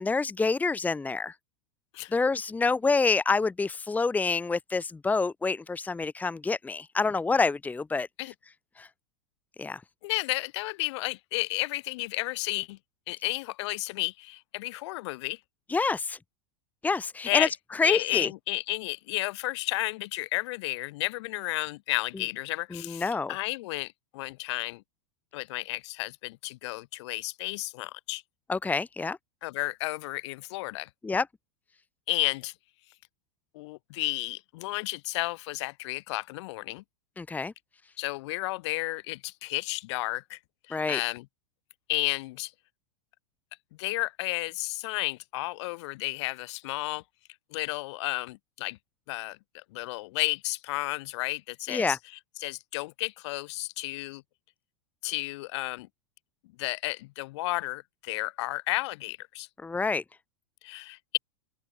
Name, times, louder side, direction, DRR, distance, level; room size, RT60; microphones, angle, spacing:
voice 1, 0.0-1.3 2.1-8.1 8.8-8.9 9.6-9.8 15.7-16.2 16.8-18.3 22.7-23.3 28.5-29.2 31.0-31.3 37.2-37.5 40.7-41.0 51.7-52.0 59.6-60.0, left 4 dB, 10° left, 1.2 m, -27 dB
voice 2, 10.0-12.8 13.1-15.4 17.3-17.5 17.8-24.8 25.3-28.2 29.4-30.9 32.1-32.5 33.5-36.8 38.0-40.4 40.7-41.3 41.9-42.5 43.8-47.0 47.5-48.8 49.1-52.0 52.4-54.2 55.0-55.9 56.6-59.5 60.6-61.2, left 20 dB, 65° left, 5.4 m, -32 dB
open air
supercardioid pair, 125°, 16 cm